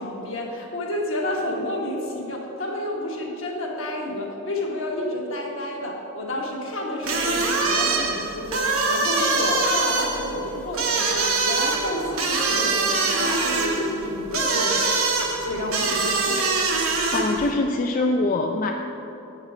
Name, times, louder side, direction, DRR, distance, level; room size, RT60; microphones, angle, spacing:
voice 1, 0.0-14.9 15.4-16.5, left 1 dB, 65° left, -1 dB, 1.5 m, -30 dB
sound 1, 7.0-17.5, right 3 dB, 80° right, 1.2 m, -24 dB
voice 2, 17.1-18.7, left 2 dB, 40° left, 2 dB, 0.4 m, -23 dB
8.3 x 6.5 x 4.9 m, 3.0 s
head